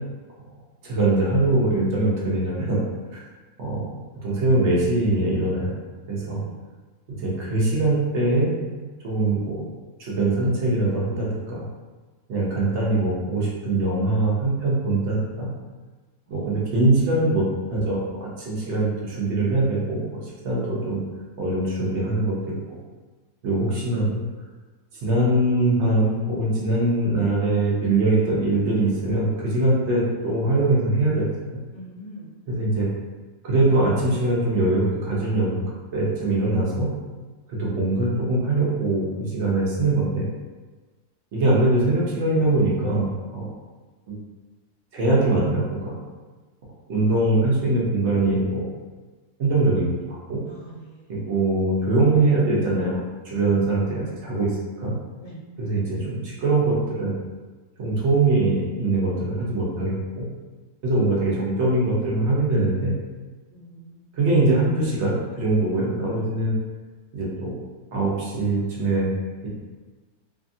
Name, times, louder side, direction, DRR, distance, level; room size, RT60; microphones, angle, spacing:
voice 1, 0.8-2.8 3.1-3.2 3.6-5.7 6.1-6.4 7.2-9.6 10.0-11.6 12.3-15.5 16.3-17.4 17.7-21.0 21.4-22.6 23.4-24.2 25.0-31.3 32.5-32.9 33.4-35.6 35.9-36.9 37.5-40.3 41.3-43.5 44.1-44.2 44.9-46.0 46.9-48.7 49.4-50.4 51.1-54.5 54.8-55.0 55.6-57.1 57.8-60.2 60.8-62.9 64.1-66.6 67.1-67.5 67.9-69.1, right 2 dB, 55° right, -5 dB, 0.9 m, -22 dB
voice 2, 6.2-6.6 16.3-16.6 31.7-32.3 50.5-51.2 55.2-55.4 63.5-64.1, right 1 dB, 45° left, -8 dB, 0.3 m, -44 dB
2.7 x 2.4 x 2.6 m, 1.3 s
omnidirectional pair, 1.7 m